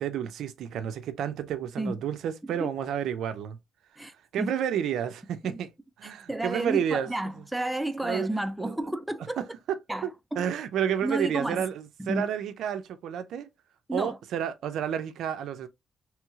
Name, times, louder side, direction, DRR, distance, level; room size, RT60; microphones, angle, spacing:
voice 1, 0.0-3.6 4.3-5.7 6.0-7.1 8.0-8.3 8.6-8.7 10.0-10.1 10.4-13.5 13.9-15.7, right 9 dB, 75° right, 0.4 m, -30 dB
voice 2, 4.0-4.5 5.4-5.6 6.0-9.5 9.9-10.4 11.0-11.6 12.0-12.2 13.9-14.2, right 1 dB, 5° right, 0.3 m, -32 dB
3.1 x 3.0 x 2.3 m
cardioid pair, 90°, 0 cm